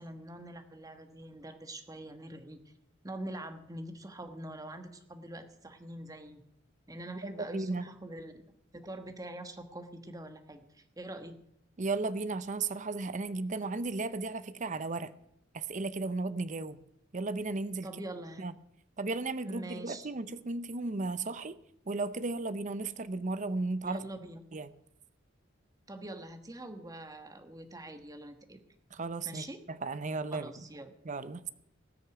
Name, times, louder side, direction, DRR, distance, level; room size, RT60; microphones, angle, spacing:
voice 1, 0.0-2.6 3.0-6.4 6.9-8.4 8.7-11.4 17.8-18.5 19.4-20.1 23.8-24.4 25.9-28.6 29.2-29.6 30.3-30.9, right 1 dB, 20° right, 7 dB, 1.2 m, -44 dB
voice 2, 7.2-7.9 11.8-15.1 15.5-16.8 17.1-17.9 18.4-18.5 19.0-21.6 21.9-24.0 24.5-24.7 28.9-30.6 31.0-31.5, right 3 dB, 40° right, 14 dB, 0.6 m, -35 dB
18.5 x 6.6 x 8.0 m, 0.73 s
head